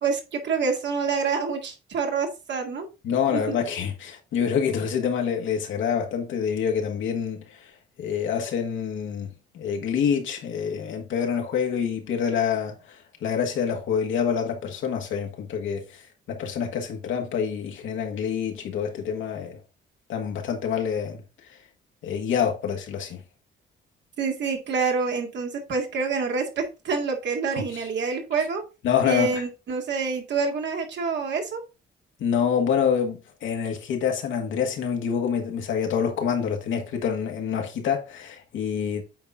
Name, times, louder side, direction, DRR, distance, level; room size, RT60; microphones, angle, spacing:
voice 1, 0.0-2.9 3.3-3.6 24.2-28.6 29.1-31.6, right 5 dB, 65° right, 2.0 m, -27 dB
voice 2, 3.0-7.4 8.0-9.3 9.5-16.0 16.3-19.6 20.1-21.2 22.0-23.2 27.5-27.8 28.8-29.4 32.2-39.0, left 7 dB, 80° left, 1.8 m, -26 dB
8.5 x 4.2 x 3.7 m
cardioid pair, 90°, 20 cm